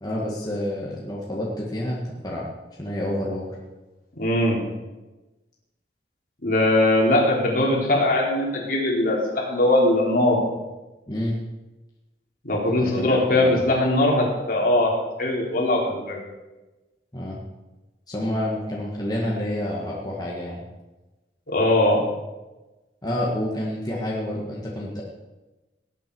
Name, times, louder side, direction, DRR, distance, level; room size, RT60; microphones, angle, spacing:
voice 1, 0.0-2.5 2.8-3.6 11.1-11.3 12.8-13.6 17.1-17.4 18.1-20.6 23.0-25.0, left 1 dB, 25° left, -4 dB, 1.8 m, -28 dB
voice 2, 4.2-4.6 6.4-10.4 12.4-16.2 21.5-22.0, left 1 dB, 55° left, -2 dB, 3.5 m, -21 dB
18.5 x 9.2 x 4.7 m, 1.1 s
head